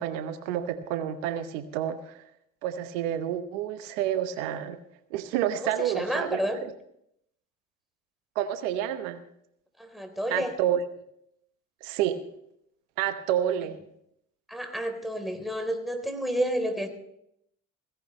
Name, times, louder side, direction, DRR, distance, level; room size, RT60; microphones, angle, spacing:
voice 1, 0.0-2.2 2.6-4.8 5.1-6.4 8.3-9.2 10.3-10.8 11.8-12.2 13.0-13.8, right 11 dB, 80° right, 10 dB, 1.0 m, -29 dB
voice 2, 5.5-6.6 9.8-10.5 14.5-16.9, equal, ahead, 6 dB, 3.6 m, -30 dB
16.5 x 16.0 x 3.2 m, 0.73 s
hypercardioid pair, 55°, 37 cm